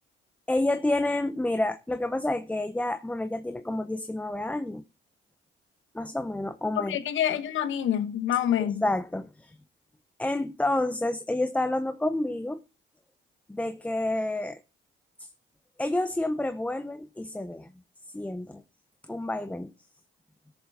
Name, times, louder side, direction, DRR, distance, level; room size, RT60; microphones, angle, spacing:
voice 1, 0.5-4.8 5.9-7.0 8.6-9.5 10.2-12.6 13.5-14.6 15.2-15.3 15.8-17.7 18.1-18.6 19.1-19.7, left 1 dB, 5° left, 0.6 m, -29 dB
voice 2, 6.8-8.9, left 10 dB, 75° left, 1.3 m, -27 dB
17.0 x 7.1 x 3.6 m
cardioid pair, 90°, 20 cm